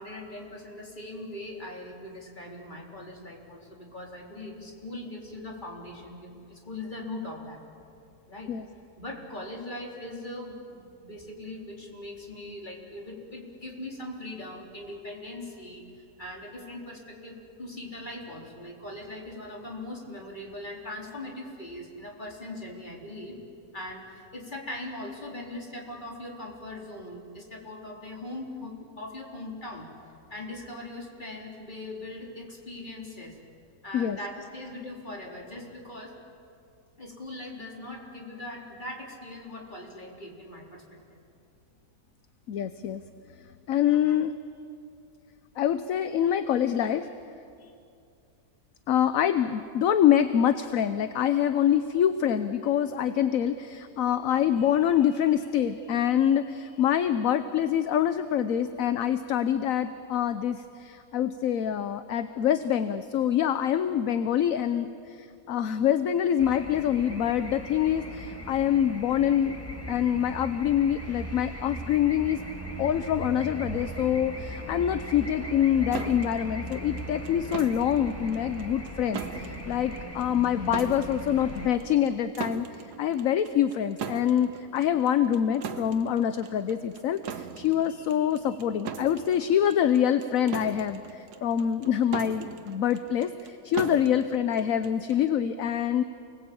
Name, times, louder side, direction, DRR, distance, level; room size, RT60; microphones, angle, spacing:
voice 1, 0.0-7.6 8.3-8.5 9.0-23.4 23.7-29.9 30.3-33.4 33.8-36.1 37.0-41.2, left 1 dB, 30° left, -1 dB, 3.9 m, -40 dB
voice 2, 42.5-43.0 43.7-44.3 45.6-47.1 48.9-69.5 69.9-72.4 72.8-96.0, left 9 dB, 65° left, 11 dB, 1.1 m, -25 dB
sound 1, 66.4-81.7, equal, 10° left, 1.8 m, -39 dB
sound 2, 75.9-95.3, right 7 dB, 80° right, 1.6 m, -40 dB
29.0 x 20.0 x 8.7 m, 2.5 s
omnidirectional pair, 1.7 m